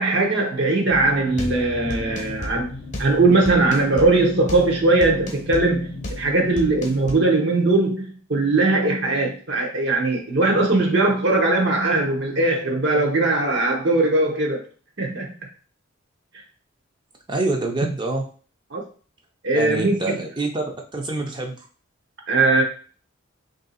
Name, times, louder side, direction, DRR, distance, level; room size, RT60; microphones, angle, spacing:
voice 1, 0.0-2.7 3.0-14.6 15.0-15.3 18.7-18.8 19.4-20.2 22.3-22.6, right 2 dB, 55° right, 1 dB, 0.8 m, -20 dB
sound 1, 0.9-7.1, left 1 dB, 35° left, 0.9 m, -33 dB
voice 2, 17.3-18.2 19.5-21.7, right 2 dB, 20° right, 2 dB, 0.6 m, -26 dB
3.3 x 2.7 x 4.0 m, 0.40 s
head